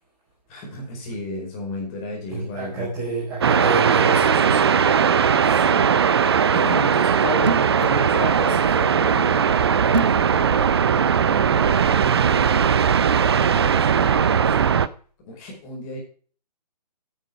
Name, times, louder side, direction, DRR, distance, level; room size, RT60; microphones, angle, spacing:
voice 1, 0.5-2.9 5.4-12.5 13.3-14.7 15.2-16.0, left 1 dB, 20° left, -2 dB, 5.0 m, -34 dB
voice 2, 2.3-4.8, right 2 dB, 15° right, -7 dB, 4.7 m, -28 dB
sound 1, 3.4-14.9, right 7 dB, 40° right, 0.5 m, -19 dB
sound 2, 7.4-7.8 9.9-10.3, right 3 dB, 80° right, 0.9 m, -24 dB
9.3 x 8.8 x 6.0 m, 0.42 s
figure-of-eight pair, 140°, 21 cm